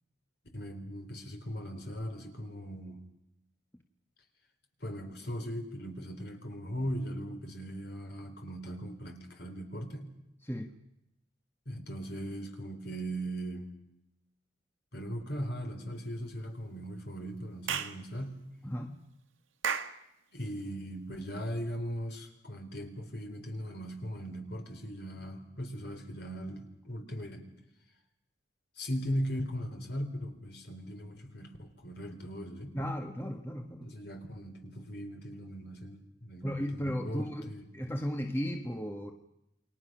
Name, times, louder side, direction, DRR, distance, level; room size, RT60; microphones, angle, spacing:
voice 1, 0.5-3.0 4.8-10.1 11.7-13.7 14.9-18.4 20.3-27.4 28.8-32.7 33.8-36.5 36.7-37.6, equal, 55° left, 5 dB, 4.0 m, -39 dB
Clapping / Chirp tweet, 17.7-18.0 19.6-20.0, right 7 dB, 80° right, 1.7 m, -32 dB
voice 2, 18.6-19.0 32.7-33.9 36.4-39.1, equal, 10° left, 4 dB, 1.3 m, -35 dB
29.0 x 23.0 x 6.2 m, 0.85 s
head